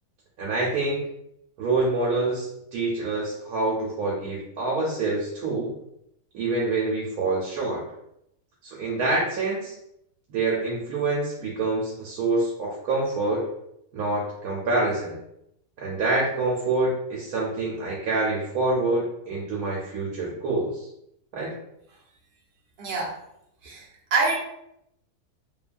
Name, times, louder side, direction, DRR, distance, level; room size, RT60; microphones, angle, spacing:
voice 1, 0.4-1.0 1.6-5.7 6.3-7.8 8.6-9.7 10.3-13.4 13.9-15.1 15.8-20.8 21.3-21.5, right 2 dB, 75° right, -4 dB, 1.1 m, -26 dB
voice 2, 22.8-23.1 23.6-23.8 24.1-24.4, right 3 dB, 50° right, -3 dB, 0.7 m, -25 dB
2.8 x 2.2 x 2.4 m, 0.78 s
omnidirectional pair, 1.7 m